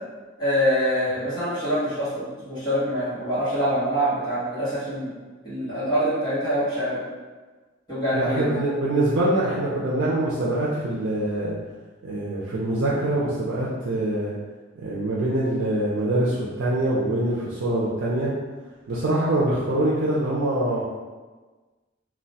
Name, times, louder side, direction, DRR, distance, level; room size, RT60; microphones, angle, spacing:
voice 1, 0.4-5.1 5.4-7.0 7.9-8.6, equal, 25° left, -13 dB, 1.1 m, -25 dB
voice 2, 8.1-11.5 12.0-14.3 14.8-18.3 18.9-20.8, right 1 dB, 75° right, -7 dB, 0.5 m, -24 dB
2.4 x 2.2 x 3.9 m, 1.3 s
head